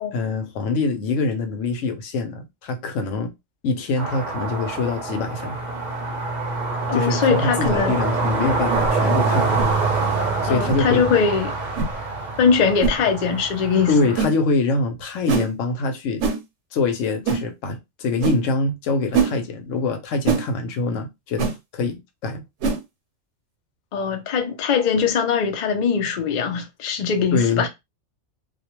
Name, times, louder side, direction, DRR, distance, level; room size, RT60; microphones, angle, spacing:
voice 1, 0.1-3.3 3.6-5.6 6.9-9.6 10.4-11.2 13.9-16.2 16.7-22.4 27.3-27.6, left 3 dB, 80° left, 1.0 m, -24 dB
sound 1, 4.0-14.3, right 3 dB, 45° right, 0.6 m, -25 dB
voice 2, 6.9-8.0 10.5-11.5 12.4-14.1 23.9-27.7, left 6 dB, 60° left, 0.5 m, -21 dB
sound 2, 7.6-7.8 8.7-8.9 9.6-9.7 10.6-10.8 11.7-11.9 12.8-13.0 14.2-14.4 15.3-15.5 16.2-16.4 17.2-17.4 18.2-18.4 19.1-19.3 20.2-20.4 21.4-21.5 22.6-22.8, right 5 dB, 75° right, 1.0 m, -22 dB
2.4 x 2.1 x 2.9 m
omnidirectional pair, 1.3 m